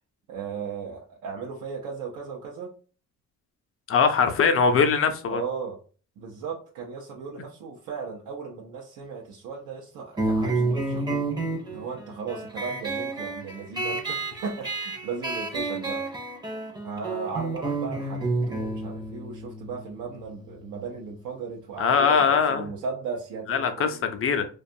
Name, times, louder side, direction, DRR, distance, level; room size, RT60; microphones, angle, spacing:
voice 1, 0.3-2.7 5.3-5.8 6.2-11.3 11.6-16.0 16.8-24.2, right 5 dB, 85° right, 0.6 m, -36 dB
voice 2, 3.9-5.4 21.8-22.7 23.5-24.4, left 6 dB, 50° left, 0.5 m, -21 dB
sound 1, 10.2-21.3, right 3 dB, 15° right, 0.6 m, -30 dB
2.5 x 2.3 x 2.6 m
cardioid pair, 90°, 30 cm